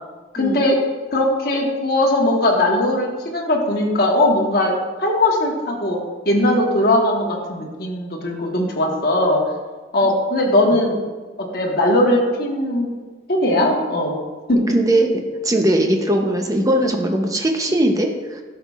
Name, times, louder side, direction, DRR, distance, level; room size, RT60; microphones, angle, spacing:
voice 1, 0.3-0.8 1.1-4.7 5.0-6.0 6.2-9.4 9.9-11.0 11.4-12.9 13.3-14.2 14.5-14.7, left 1 dB, 55° left, -1 dB, 1.3 m, -19 dB
voice 2, 14.7-15.1 15.4-18.4, right 1 dB, 20° right, 3 dB, 0.7 m, -19 dB
12.0 x 5.7 x 2.4 m, 1.4 s
head